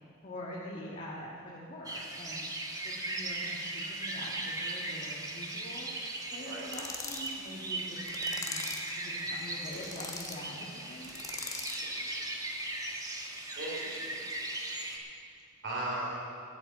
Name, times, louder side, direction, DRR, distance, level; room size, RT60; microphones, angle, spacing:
voice 1, 0.2-2.5 2.8-5.9 6.3-8.6 9.0-11.1, left 1 dB, 40° left, -6 dB, 1.6 m, -44 dB
sound 1, 1.8-15.0, right 2 dB, 20° right, 1.4 m, -38 dB
sound 2, 6.7-7.3 8.1-8.9 9.6-10.4 11.0-11.9, left 3 dB, 15° left, 1.1 m, -41 dB
voice 2, 11.8-12.1 13.6-14.2 15.6-16.3, right 1 dB, 60° right, -5 dB, 4.1 m, -37 dB
13.0 x 8.1 x 8.3 m, 2.5 s
head